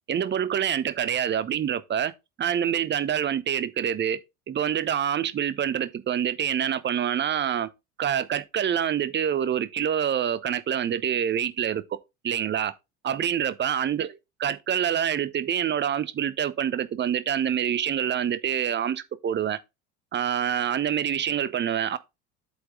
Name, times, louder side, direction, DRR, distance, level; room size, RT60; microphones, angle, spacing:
voice 1, 0.1-2.1 2.4-4.2 4.5-7.7 8.0-11.8 12.2-12.7 13.0-14.1 14.4-19.6 20.1-22.0, right 9 dB, 25° right, 0.8 m, -26 dB
7.9 x 5.2 x 3.7 m
figure-of-eight pair, 70°, 46 cm